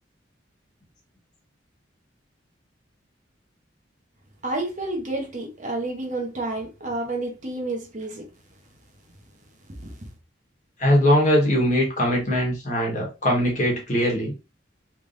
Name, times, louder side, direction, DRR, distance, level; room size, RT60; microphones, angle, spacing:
voice 1, 4.4-8.2 9.7-10.1, right 2 dB, 40° right, 1.0 m, -30 dB
voice 2, 10.8-14.3, equal, 40° left, 1.4 m, -21 dB
3.4 x 3.4 x 2.6 m
head